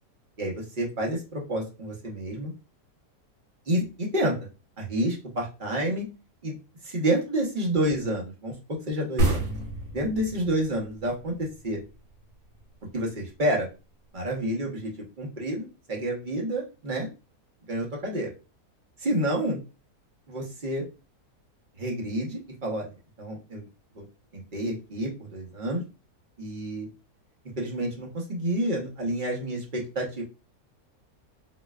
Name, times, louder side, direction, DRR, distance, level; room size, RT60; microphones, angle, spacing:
voice 1, 0.4-2.5 3.7-4.3 4.8-6.0 6.4-6.5 6.8-8.5 8.9-9.4 9.9-11.8 12.9-13.7 14.1-14.9 15.2-17.1 17.7-18.3 19.0-19.6 20.3-20.8 21.8-23.7 24.0-24.1 24.5-25.8 26.4-26.9 27.6-30.2, right 1 dB, 40° right, -1 dB, 0.8 m, -29 dB
sound 1, 9.2-12.6, right 2 dB, 60° right, 1.2 m, -29 dB
4.1 x 2.2 x 2.2 m, 0.30 s
omnidirectional pair, 1.7 m